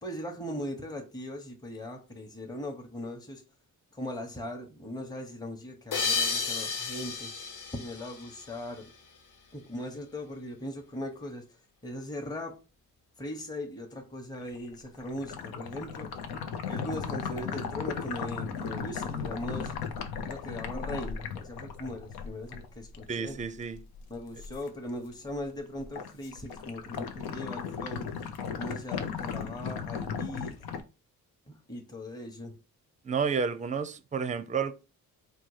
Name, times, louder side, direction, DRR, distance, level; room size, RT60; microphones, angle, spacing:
voice 1, 0.0-3.4 3.9-7.3 7.7-8.9 9.5-11.4 11.8-12.6 13.2-16.2 16.6-19.7 20.2-23.4 24.1-28.1 28.5-30.6 31.5-32.6, left 1 dB, 10° left, 0.9 m, -39 dB
sound 1, 5.9-9.0, left 5 dB, 60° left, 0.9 m, -32 dB
sound 2, 14.3-24.7 25.0-25.5 25.8-30.8, left 6 dB, 90° left, 0.7 m, -36 dB
voice 2, 23.1-23.8 33.0-34.7, right 5 dB, 20° right, 0.5 m, -30 dB
4.3 x 2.3 x 4.7 m
cardioid pair, 90°, 36 cm